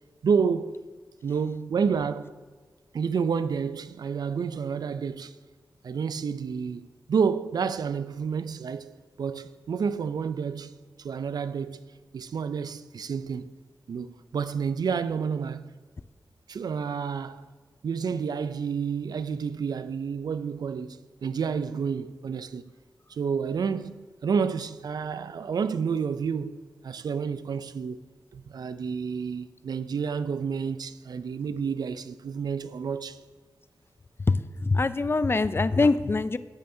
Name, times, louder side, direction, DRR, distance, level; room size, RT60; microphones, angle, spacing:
voice 1, 0.2-0.8 1.2-2.3 2.9-5.3 5.8-8.9 9.2-10.7 11.0-11.8 12.1-13.5 13.9-15.7 16.5-17.4 17.8-22.7 23.1-28.0 28.3-33.2, right 6 dB, 70° right, 0.4 m, -29 dB
voice 2, 34.3-36.4, left 3 dB, 35° left, 0.3 m, -23 dB
8.9 x 8.7 x 2.7 m
cardioid pair, 45°, 7 cm